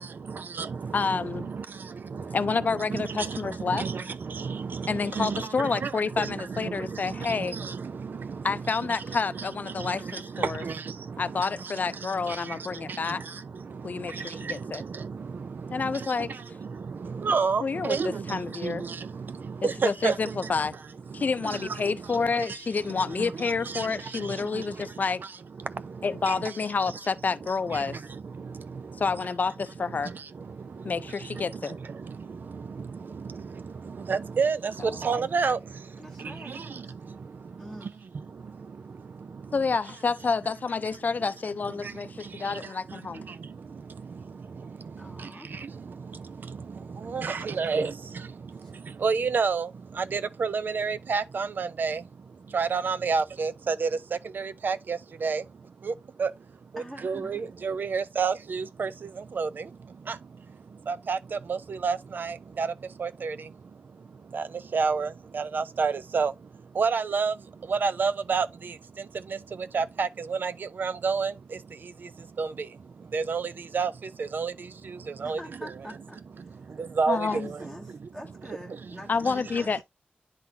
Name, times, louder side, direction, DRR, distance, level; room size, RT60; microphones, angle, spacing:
voice 1, 0.0-20.8 21.1-26.6 26.9-29.2 29.8-39.8 41.2-41.3 41.6-75.7 76.4-78.1 79.2-79.7, right 5 dB, 70° right, 0.5 m, -32 dB
voice 2, 0.9-1.5 2.3-3.9 4.9-7.6 8.4-10.6 11.2-13.2 13.8-14.8 15.7-16.3 17.6-18.9 19.8-20.7 21.1-25.2 26.0-28.0 29.0-30.1 30.8-31.8 39.5-43.2 77.1-77.5 79.1-79.8, left 5 dB, 55° left, 0.5 m, -29 dB
voice 3, 36.0-36.9 37.6-38.0 45.0-45.5 47.2-47.7 48.6-48.7 56.7-57.5 75.2-76.6 77.1-79.7, equal, 10° right, 1.5 m, -45 dB
10.5 x 3.9 x 2.6 m
wide cardioid pair, 130°, 3 cm